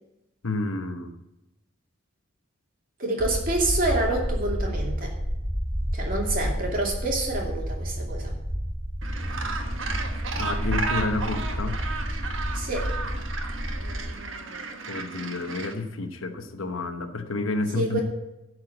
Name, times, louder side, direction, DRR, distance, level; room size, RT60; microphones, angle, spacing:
voice 1, 0.4-1.1 10.4-11.8 14.9-18.0, left 3 dB, 80° left, 8 dB, 1.1 m, -30 dB
voice 2, 3.0-5.1 5.9-8.3 12.5-12.9 17.7-18.0, right 2 dB, 40° right, -1 dB, 2.6 m, -27 dB
sound 1, 3.2-14.1, equal, 20° right, 1.4 m, -30 dB
Gull seagull, 9.0-15.7, right 4 dB, 70° right, 1.3 m, -34 dB
12.0 x 4.8 x 7.7 m, 0.94 s
head